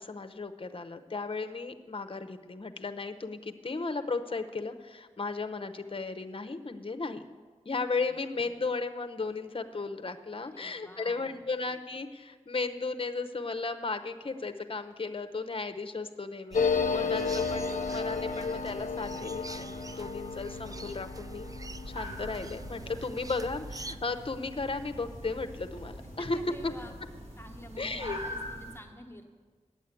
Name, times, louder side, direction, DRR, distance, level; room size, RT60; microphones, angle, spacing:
voice 1, 0.0-7.3 7.7-21.5 21.9-26.4 26.6-26.7 27.8-28.2, left 3 dB, 45° left, 8 dB, 0.7 m, -35 dB
voice 2, 10.4-11.5 26.2-26.9 27.4-29.3, equal, 20° left, 3 dB, 1.3 m, -49 dB
sound 1, 16.5-25.7 26.0-26.1 26.3-26.9, left 5 dB, 85° left, 0.5 m, -34 dB
sound 2, 16.5-24.0, right 3 dB, 25° right, 0.3 m, -45 dB
sound 3, 21.9-28.8, equal, 55° right, 2.9 m, -44 dB
9.0 x 8.2 x 8.3 m, 1.5 s
wide cardioid pair, 50°, 13 cm